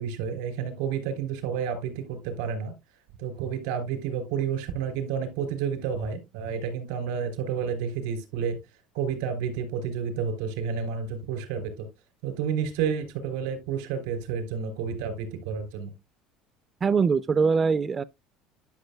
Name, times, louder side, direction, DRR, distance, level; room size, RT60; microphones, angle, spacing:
voice 1, 0.0-2.7 3.2-8.6 8.9-11.9 12.2-15.9, right 7 dB, 85° right, 3.5 m, -30 dB
voice 2, 16.8-18.0, right 5 dB, 30° right, 0.3 m, -22 dB
11.5 x 6.3 x 2.2 m
supercardioid pair, 110°, 0 cm